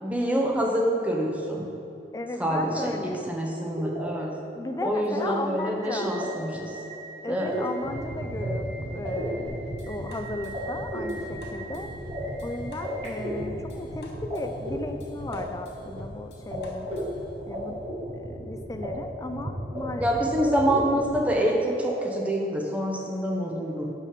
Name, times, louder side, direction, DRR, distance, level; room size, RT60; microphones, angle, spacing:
voice 1, 0.0-1.7 2.4-4.3 4.8-6.7 7.3-7.5 20.0-23.9, equal, 10° right, -1 dB, 0.7 m, -26 dB
voice 2, 2.1-3.3 4.5-6.1 7.2-11.9 12.4-16.9 17.5-17.8 18.1-20.1 20.7-21.1, left 2 dB, 20° left, 6 dB, 0.3 m, -36 dB
sound 1, 3.2-14.4 14.6-16.2 16.5-16.6 16.8-18.9 19.1-19.8 20.1-21.5 21.9-22.0, equal, 30° right, 1.5 m, -35 dB
sound 2, 7.8-21.3, right 1 dB, 45° right, 0.5 m, -39 dB
sound 3, 9.5-17.4, left 1 dB, 75° left, 0.8 m, -43 dB
5.4 x 5.0 x 5.1 m, 2.7 s
head